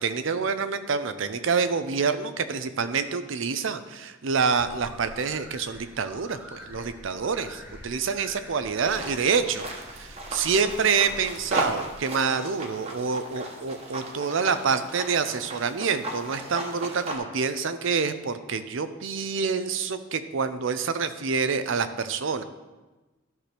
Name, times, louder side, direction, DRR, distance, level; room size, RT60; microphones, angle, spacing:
voice 1, 0.0-22.4, right 5 dB, 65° right, 11 dB, 0.5 m, -27 dB
sound 1, 4.6-12.0, equal, 10° right, 1.3 m, -46 dB
sound 2, 8.8-17.2, right 1 dB, 30° right, 1.1 m, -36 dB
12.5 x 5.9 x 3.4 m, 1.1 s
head